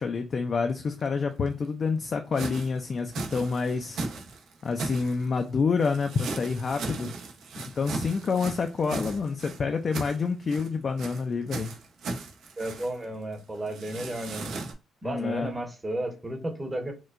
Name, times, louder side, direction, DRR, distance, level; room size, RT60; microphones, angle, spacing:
voice 1, 0.0-4.0 4.6-7.1 7.6-11.8 15.0-15.6, left 5 dB, 40° left, 0.4 m, -28 dB
sound 1, 1.0-1.1 1.5-1.6 2.3-5.4 5.8-9.6 9.9-10.7 11.0-11.2 11.5-13.0 13.3-13.4 13.7-14.7, right 3 dB, 75° right, 0.8 m, -37 dB
voice 2, 12.6-14.5 15.0-16.9, right 1 dB, 15° right, 0.9 m, -33 dB
4.4 x 2.2 x 2.5 m
cardioid pair, 120°, 0 cm